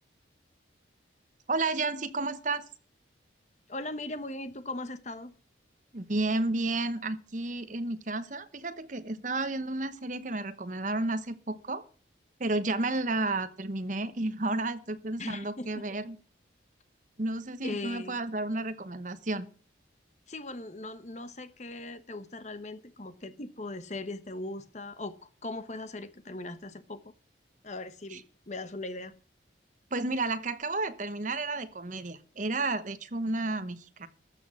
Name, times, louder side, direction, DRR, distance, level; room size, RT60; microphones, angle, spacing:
voice 1, 1.5-2.6 5.9-11.8 12.4-16.2 17.2-19.5 28.1-28.2 29.9-34.1, right 2 dB, 40° right, 11 dB, 1.0 m, -32 dB
voice 2, 3.7-5.3 15.2-15.7 17.6-18.2 20.3-27.0 27.6-29.1, left 2 dB, 40° left, 11 dB, 1.1 m, -39 dB
13.5 x 6.2 x 7.5 m, 0.40 s
head